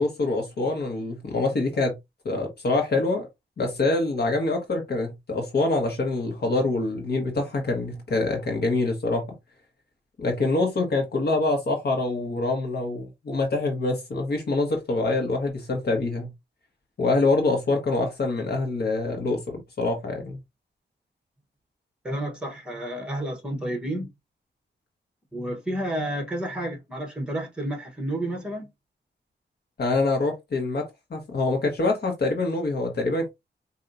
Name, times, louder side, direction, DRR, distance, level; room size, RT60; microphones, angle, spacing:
voice 1, 0.0-1.9 2.2-3.3 3.6-9.2 10.2-16.3 17.0-20.4 29.8-30.8 31.1-33.3, left 2 dB, 60° left, 1.3 m, -25 dB
voice 2, 22.0-24.1 25.3-28.7, right 1 dB, 5° right, 1.2 m, -30 dB
4.6 x 2.7 x 2.6 m
wide cardioid pair, 135°, 19 cm